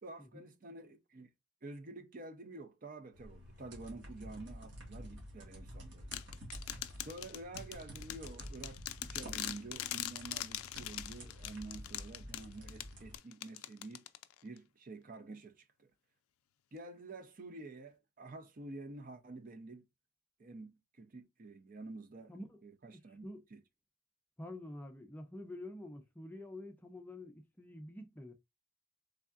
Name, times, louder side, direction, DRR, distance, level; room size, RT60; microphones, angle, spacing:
voice 1, 0.0-1.3 1.6-6.2 7.0-14.1 14.4-15.9 16.7-19.8 20.4-22.3 22.6-23.2 23.5-23.6, right 2 dB, 40° right, 0.5 m, -49 dB
sound 1, 3.1-13.2, equal, 55° right, 1.5 m, -50 dB
sound 2, 6.1-14.6, left 13 dB, 85° left, 0.3 m, -43 dB
voice 2, 22.3-22.6 23.2-23.4 24.4-28.3, left 1 dB, 10° left, 0.4 m, -47 dB
3.6 x 3.4 x 2.4 m
head